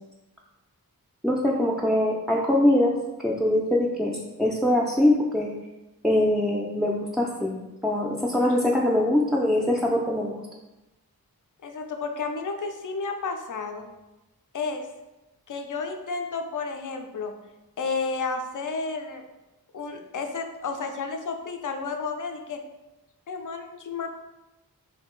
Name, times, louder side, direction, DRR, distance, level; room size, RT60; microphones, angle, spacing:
voice 1, 1.2-2.9 3.2-5.5 6.0-7.5 7.8-10.4, left 1 dB, ahead, -4 dB, 0.4 m, -23 dB
voice 2, 11.6-13.9 14.5-14.9 15.5-17.3 17.8-19.2 19.7-22.6 23.3-24.1, left 4 dB, 55° left, 5 dB, 0.5 m, -31 dB
2.7 x 2.7 x 3.7 m, 1.0 s
wide cardioid pair, 45°, 38 cm